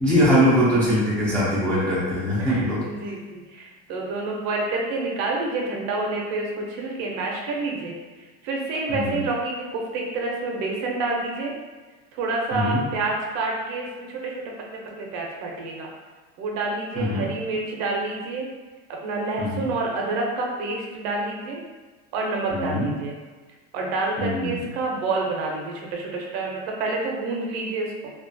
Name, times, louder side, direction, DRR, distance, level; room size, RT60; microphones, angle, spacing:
voice 1, 0.0-2.8 8.9-9.1 12.5-12.8 17.0-17.3 19.4-19.7 22.5-22.9 24.2-24.6, equal, 5° left, -10 dB, 0.3 m, -22 dB
voice 2, 2.4-8.0 8.4-11.5 12.1-14.4 14.7-15.9 16.4-18.5 18.9-21.6 22.1-23.1 23.7-28.1, right 3 dB, 55° right, -1 dB, 0.5 m, -28 dB
2.3 x 2.2 x 2.5 m, 1.3 s
supercardioid pair, 150°, 32 cm